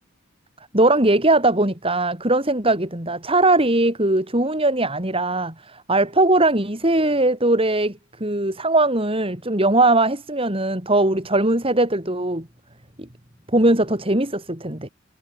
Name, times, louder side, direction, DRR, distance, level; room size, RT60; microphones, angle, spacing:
voice 1, 0.7-12.5 13.0-13.1 13.5-14.9, right 2 dB, 25° right, 4.7 m, -20 dB
head